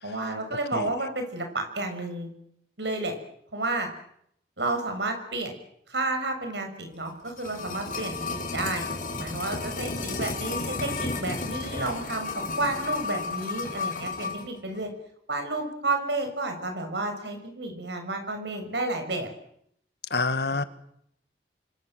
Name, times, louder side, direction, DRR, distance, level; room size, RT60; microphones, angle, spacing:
voice 1, 0.0-2.3 2.8-3.1 3.5-3.9 4.6-5.6 5.9-8.9 9.2-14.9 15.3-19.3 20.5-20.7, right 2 dB, 80° right, 5 dB, 6.7 m, -31 dB
sound 1, 7.0-14.5 14.7-14.8, left 3 dB, 45° left, 5.5 m, -33 dB
voice 2, 20.1-20.6, left 3 dB, 65° left, 11 dB, 1.9 m, -26 dB
29.0 x 25.5 x 7.8 m, 0.74 s
head